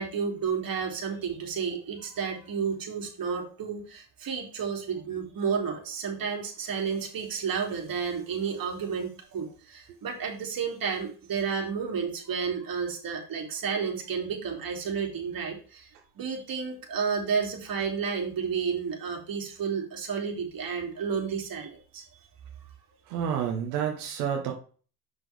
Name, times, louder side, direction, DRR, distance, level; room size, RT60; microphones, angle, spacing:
voice 1, 0.0-22.0, right 6 dB, 50° right, 1 dB, 3.2 m, -31 dB
voice 2, 23.0-24.5, right 8 dB, 90° right, 1 dB, 1.6 m, -29 dB
7.4 x 6.2 x 3.6 m, 0.39 s
supercardioid pair, 80°, 45 cm